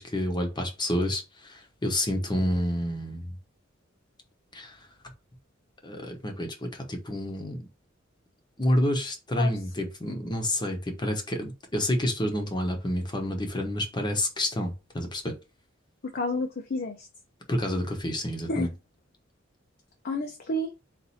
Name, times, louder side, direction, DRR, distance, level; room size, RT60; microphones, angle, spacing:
voice 1, 0.0-3.4 4.5-4.8 5.8-7.7 8.6-15.3 17.5-18.7, left 1 dB, 20° left, 0.9 m, -29 dB
voice 2, 16.0-17.1 18.5-18.7 20.0-20.7, left 2 dB, 50° left, 0.6 m, -30 dB
4.2 x 2.6 x 4.1 m
head